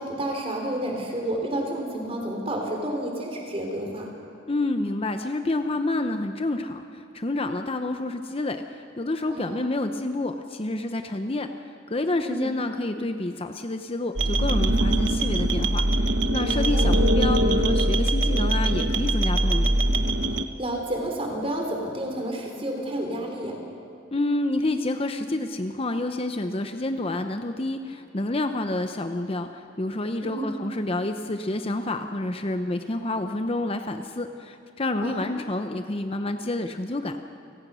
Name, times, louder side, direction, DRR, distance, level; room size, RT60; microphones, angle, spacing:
voice 1, 0.0-4.1 9.3-9.7 12.2-12.5 16.4-16.9 20.3-23.6 30.2-30.6 35.0-35.4, right 1 dB, 30° right, 1 dB, 3.7 m, -30 dB
voice 2, 4.5-11.5 11.9-19.8 24.1-37.2, left 2 dB, 30° left, 7 dB, 0.7 m, -28 dB
sound 1, 14.2-20.5, right 1 dB, 70° right, 1.1 m, -22 dB
29.5 x 18.0 x 6.3 m, 2.8 s
head